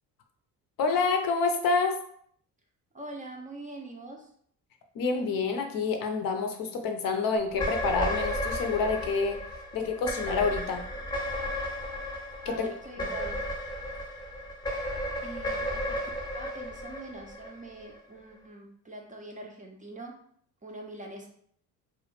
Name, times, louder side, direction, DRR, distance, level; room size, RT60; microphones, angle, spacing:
voice 1, 0.8-2.0 4.9-9.4 9.7-10.8 12.5-12.7 13.0-13.1, left 4 dB, 55° left, 5 dB, 0.6 m, -28 dB
voice 2, 2.9-4.3 12.4-13.4 14.0-14.1 15.2-16.0 16.3-20.1 20.6-21.3, right 2 dB, 20° right, 1 dB, 0.4 m, -43 dB
sound 1, 7.5-18.0, equal, 10° left, 0.7 m, -34 dB
2.3 x 2.0 x 3.0 m, 0.63 s
hypercardioid pair, 55°, 42 cm